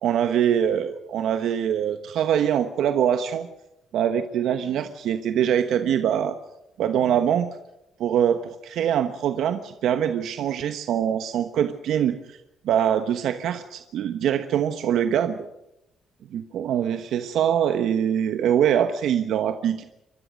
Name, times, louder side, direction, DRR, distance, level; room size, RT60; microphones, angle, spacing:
voice 1, 0.0-3.5 3.9-6.4 6.8-7.5 8.0-12.4 12.6-15.4 16.3-19.8, right 9 dB, 80° right, 8 dB, 1.1 m, -23 dB
24.0 x 21.0 x 6.4 m, 0.89 s
cardioid pair, 90°, 0 cm